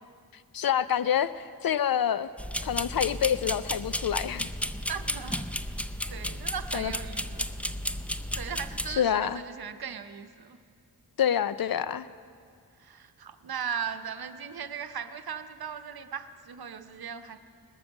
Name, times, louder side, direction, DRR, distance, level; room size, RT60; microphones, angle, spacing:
voice 1, 0.5-2.3 2.6-4.5 6.7-6.9 9.0-9.4 11.2-12.1, left 9 dB, 65° left, 15 dB, 0.5 m, -27 dB
sound 1, 2.4-9.0, left 1 dB, 5° left, 0.4 m, -33 dB
voice 2, 4.9-5.5 6.1-7.5 8.3-10.6 12.8-17.4, right 7 dB, 70° right, 10 dB, 0.8 m, -38 dB
20.0 x 7.0 x 7.2 m, 2.2 s
cardioid pair, 50°, 38 cm